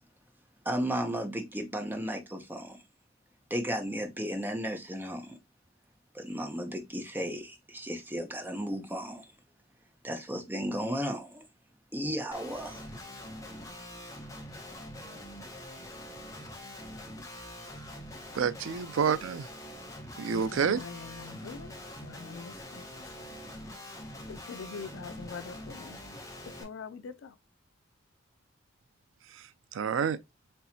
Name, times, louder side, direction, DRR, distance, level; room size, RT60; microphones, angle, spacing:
voice 1, 0.6-2.8 3.5-5.4 6.1-9.3 10.0-11.4 11.9-12.8, equal, 10° right, 0.9 m, -34 dB
Guitar, 12.3-26.6, left 1 dB, 15° left, 1.0 m, -44 dB
voice 2, 18.3-19.5 20.2-20.8 29.7-30.2, right 6 dB, 70° right, 0.4 m, -28 dB
voice 3, 20.2-21.7 22.0-22.9 23.2-23.3 24.3-26.0 26.6-27.3, left 5 dB, 75° left, 0.4 m, -43 dB
4.4 x 3.1 x 2.7 m
head